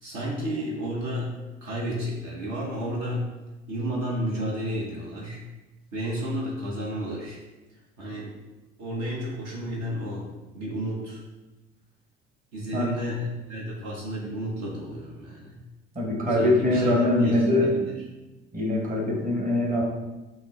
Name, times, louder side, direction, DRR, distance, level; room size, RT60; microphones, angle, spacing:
voice 1, 0.0-3.2 3.7-5.4 5.9-7.4 8.0-8.3 8.8-10.3 10.5-11.2 12.5-15.6 16.4-17.9, equal, 60° right, -3 dB, 1.0 m, -32 dB
voice 2, 15.9-17.7 18.5-19.8, left 1 dB, 25° right, -1 dB, 1.3 m, -23 dB
5.9 x 2.1 x 3.6 m, 1.1 s
hypercardioid pair, 55°, 32 cm